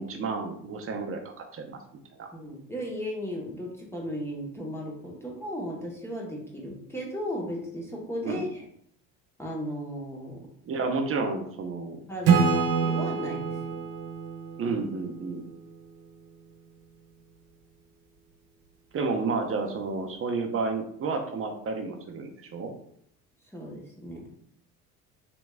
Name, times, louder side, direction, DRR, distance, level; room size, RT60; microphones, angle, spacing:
voice 1, 0.0-1.8 2.2-2.3 8.2-8.4 10.7-12.0 14.6-15.4 18.9-22.7, right 4 dB, 30° right, 4 dB, 0.6 m, -31 dB
voice 2, 2.3-8.7 9.4-10.5 12.1-13.6 23.5-24.2, equal, 5° left, -2 dB, 0.9 m, -35 dB
Acoustic guitar / Strum, 12.3-15.8, right 5 dB, 60° right, 0.8 m, -26 dB
3.4 x 2.9 x 2.2 m, 0.67 s
hypercardioid pair, 65°, 46 cm